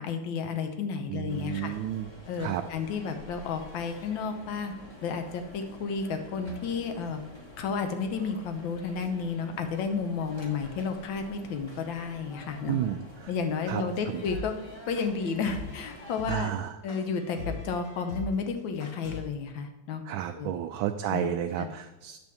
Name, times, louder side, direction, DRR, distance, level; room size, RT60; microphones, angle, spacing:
voice 1, 0.0-1.7 2.3-4.7 5.0-7.2 7.6-12.8 13.3-14.5 14.9-16.5 16.8-20.0 20.3-20.5 21.1-21.3 21.6-21.7, left 5 dB, 80° left, 6 dB, 1.6 m, -32 dB
voice 2, 1.1-2.1 2.4-2.6 12.7-13.3 13.7-14.2 16.3-16.7 20.1-22.2, right 11 dB, 85° right, 5 dB, 1.4 m, -32 dB
sound 1, 1.3-16.2, left 1 dB, 15° left, 1.1 m, -48 dB
sound 2, 14.0-19.2, left 2 dB, 60° left, 3.3 m, -40 dB
9.7 x 3.5 x 7.0 m, 1.0 s
omnidirectional pair, 2.1 m